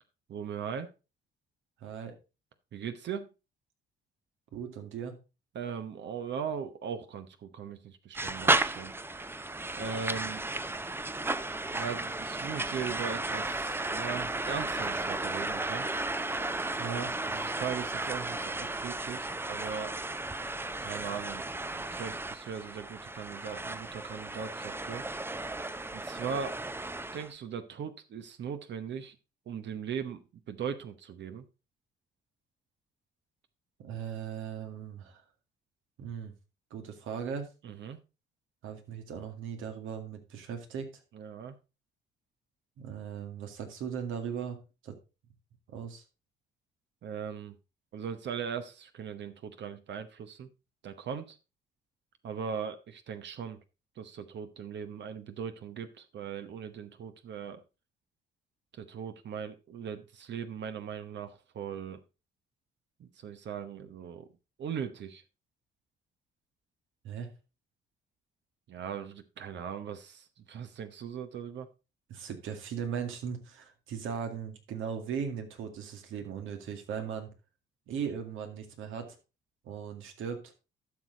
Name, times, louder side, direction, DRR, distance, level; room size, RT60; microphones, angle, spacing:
voice 1, 0.3-0.9 2.7-3.3 5.5-8.9 9.7-10.4 11.7-15.9 17.3-19.9 20.8-25.0 25.9-26.6 27.1-29.2 29.5-31.4 37.6-38.0 41.1-41.5 47.0-47.6 47.9-50.5 50.8-51.4 52.2-53.6 54.0-57.6 58.7-62.0 63.0-64.3 64.6-65.2 68.7-71.7, right 7 dB, 65° right, 9 dB, 1.0 m, -39 dB
voice 2, 1.8-2.2 4.5-5.2 16.8-17.1 33.8-35.2 36.0-36.3 36.7-37.5 38.6-41.0 42.8-45.0 45.7-46.0 67.0-67.3 72.1-77.3 77.9-79.2 79.6-80.5, right 7 dB, 85° right, 6 dB, 2.1 m, -38 dB
sound 1, 8.1-27.3, right 2 dB, 10° right, 0.6 m, -34 dB
12.0 x 6.5 x 3.9 m, 0.29 s
cardioid pair, 90°, 20 cm